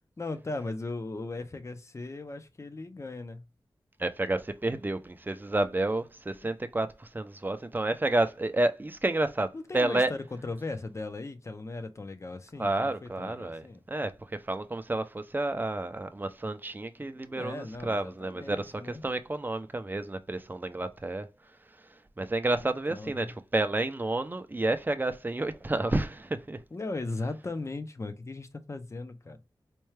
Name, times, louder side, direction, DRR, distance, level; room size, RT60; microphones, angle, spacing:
voice 1, 0.2-3.4 6.4-6.5 9.5-13.8 17.0-19.0 22.6-23.3 26.7-29.4, left 2 dB, 35° left, 0.6 m, -38 dB
voice 2, 4.0-10.1 12.6-21.3 22.2-26.6, right 2 dB, 25° right, 0.5 m, -30 dB
4.4 x 2.3 x 3.2 m
wide cardioid pair, 105°, 9 cm